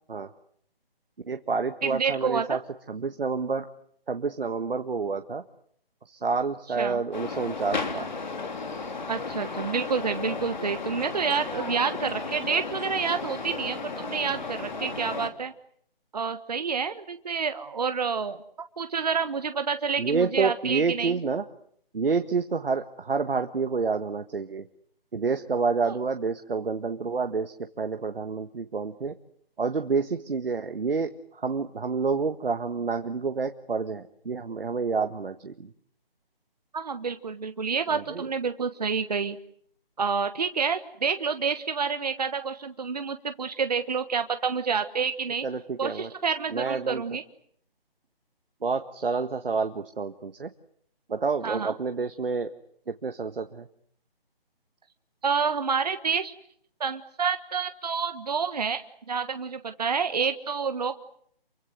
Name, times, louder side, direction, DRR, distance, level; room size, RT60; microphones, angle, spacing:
voice 1, 1.3-2.6 2.9-3.7 4.1-5.4 6.0-8.1 20.0-21.4 21.9-24.7 25.1-29.1 29.6-35.7 37.9-38.3 45.4-46.1 46.5-47.0 48.6-50.5 51.1-52.5 52.9-53.7, right 4 dB, 65° right, 7 dB, 1.6 m, -28 dB
voice 2, 1.8-2.6 6.8-7.0 9.1-15.5 16.1-18.4 18.8-21.2 25.8-25.9 36.7-39.4 40.0-45.4 45.8-47.2 51.4-51.7 55.2-56.3 56.8-61.0, right 5 dB, 40° right, 9 dB, 1.4 m, -28 dB
sound 1, 7.1-15.3, left 4 dB, 50° left, 3.1 m, -34 dB
28.5 x 24.0 x 8.0 m, 0.65 s
hypercardioid pair, 175°, 30 cm